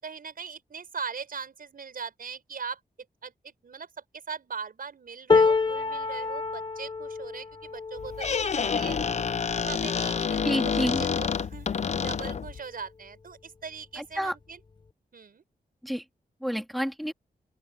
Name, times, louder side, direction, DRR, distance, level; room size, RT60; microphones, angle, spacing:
voice 1, 0.0-2.8 3.2-9.0 9.7-11.7 12.0-14.6 15.1-15.4, right 6 dB, 65° right, 6.5 m, -40 dB
sound 1, 5.3-11.4 12.0-12.2 12.5-13.3 14.2-14.3, left 4 dB, 30° left, 1.1 m, -29 dB
Squeak, 8.0-12.6, left 6 dB, 45° left, 0.5 m, -28 dB
voice 2, 10.4-11.0 14.0-14.3 15.8-16.0 16.4-17.1, equal, ahead, 2.1 m, -29 dB
open air
wide cardioid pair, 155°, 16 cm